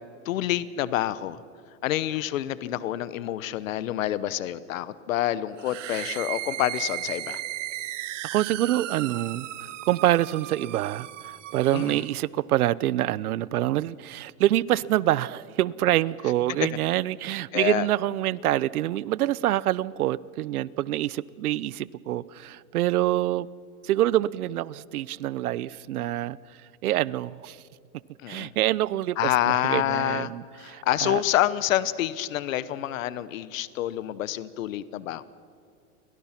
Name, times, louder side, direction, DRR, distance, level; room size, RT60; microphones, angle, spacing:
voice 1, 0.2-1.4 1.8-7.4 11.7-12.0 16.6-16.7 17.5-17.9 28.2-28.5 29.2-30.3 30.6-35.2, left 13 dB, 65° left, 1.1 m, -27 dB
sound 1, 5.6-12.1, right 14 dB, 55° right, 1.0 m, -36 dB
voice 2, 8.3-23.5 23.8-26.4 26.8-27.6 28.3-31.2, right 14 dB, 80° right, 0.8 m, -26 dB
29.5 x 23.0 x 5.9 m
supercardioid pair, 175°, 43 cm